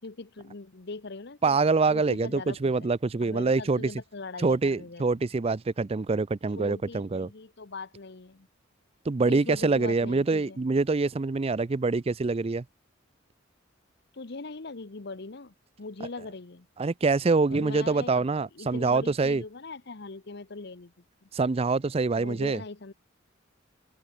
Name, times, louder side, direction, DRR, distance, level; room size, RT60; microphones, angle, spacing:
voice 1, 0.0-1.6 1.9-2.9 3.2-5.3 6.5-8.5 9.2-10.6 14.1-16.7 17.5-18.3 18.5-20.9 21.2-21.3 22.2-22.9, left 3 dB, 60° left, 1.0 m, -41 dB
voice 2, 1.4-3.9 4.4-7.3 9.1-12.6 16.8-19.4 21.3-22.6, right 3 dB, 30° right, 0.4 m, -25 dB
open air
head